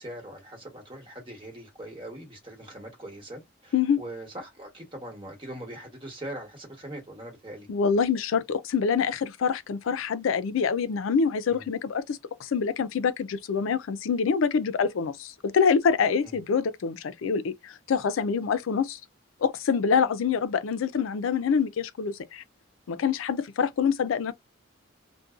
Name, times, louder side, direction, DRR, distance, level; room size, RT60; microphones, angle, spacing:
voice 1, 0.0-7.7 11.5-11.6 16.2-16.3, right 1 dB, 25° right, 1.1 m, -41 dB
voice 2, 7.7-19.0 19.4-22.4 22.9-24.3, left 6 dB, 85° left, 0.4 m, -26 dB
2.6 x 2.1 x 2.4 m
head